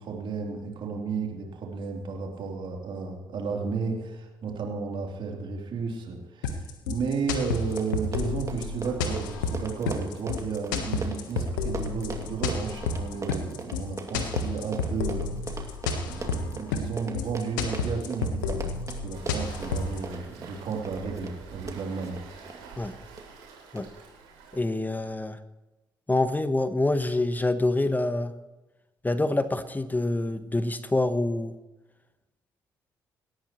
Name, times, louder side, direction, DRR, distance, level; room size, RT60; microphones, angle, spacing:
voice 1, 0.0-15.7 16.0-22.2, right 5 dB, 55° right, 0 dB, 3.5 m, -33 dB
sound 1, 6.4-20.0, left 5 dB, 80° left, 1.3 m, -30 dB
Run, 7.3-7.4 7.6-22.6 23.2-23.4 23.8-23.9, right 3 dB, 30° right, 2.6 m, -39 dB
Waves surf, 19.1-24.6, right 4 dB, 75° right, 3.7 m, -47 dB
voice 2, 24.5-25.4 26.1-28.3 29.0-31.5, left 2 dB, 15° left, 12 dB, 1.2 m, -26 dB
27.5 x 13.0 x 3.2 m, 1.1 s
figure-of-eight pair, 45°, 10 cm